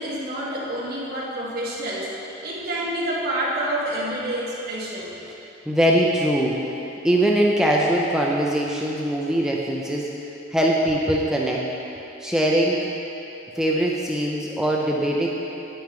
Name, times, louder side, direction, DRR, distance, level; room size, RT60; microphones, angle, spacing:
voice 1, 0.0-2.1 2.4-5.1, right 1 dB, 50° right, -5 dB, 1.6 m, -28 dB
voice 2, 5.7-6.5 7.0-10.1 10.5-11.7 12.2-12.8 13.6-15.3, right 1 dB, 5° right, -3 dB, 0.5 m, -21 dB
9.2 x 9.0 x 3.7 m, 3.0 s
head